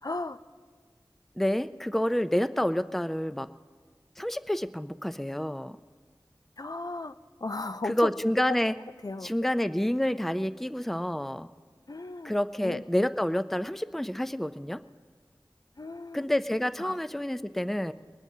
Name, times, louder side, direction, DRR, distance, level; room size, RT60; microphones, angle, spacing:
voice 1, 0.0-0.4 6.6-8.1 8.5-8.7 9.0-9.3 11.9-12.3 12.6-12.8 15.8-16.3 16.8-17.0, left 3 dB, 55° left, 11 dB, 0.5 m, -35 dB
voice 2, 1.4-3.5 4.2-5.8 7.8-8.7 9.2-11.5 12.2-14.8 16.1-17.9, left 1 dB, 5° left, 12 dB, 0.4 m, -28 dB
22.0 x 19.5 x 2.8 m, 1.5 s
wide cardioid pair, 45°, 8 cm